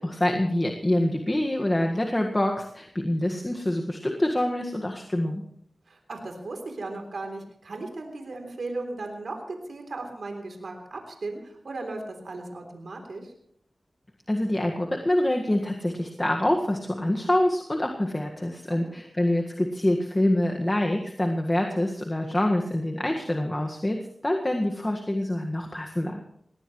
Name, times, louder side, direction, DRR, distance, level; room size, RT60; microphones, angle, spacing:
voice 1, 0.0-5.4 14.3-26.2, left 1 dB, 25° left, 2 dB, 1.7 m, -26 dB
voice 2, 5.9-13.3 18.7-19.0, right 2 dB, 80° right, 4 dB, 3.4 m, -36 dB
19.5 x 18.5 x 3.2 m, 0.70 s
wide cardioid pair, 55°, 0 cm